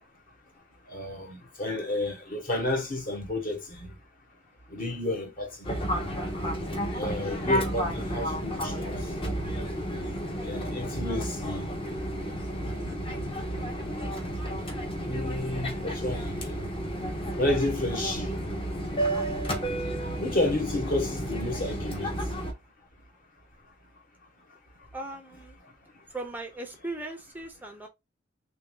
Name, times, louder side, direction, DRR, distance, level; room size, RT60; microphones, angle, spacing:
voice 1, 0.9-3.9 4.7-5.9 6.6-6.7 6.9-9.1 10.4-11.7 15.0-16.6 17.3-18.4 20.2-22.3 25.9-26.0, left 2 dB, 45° left, 1.3 m, -31 dB
Fixed-wing aircraft airplane, 5.6-22.5, right 1 dB, 30° left, 0.8 m, -32 dB
voice 2, 24.9-25.6 26.1-27.9, right 2 dB, 10° right, 0.5 m, -38 dB
3.1 x 2.6 x 3.6 m
head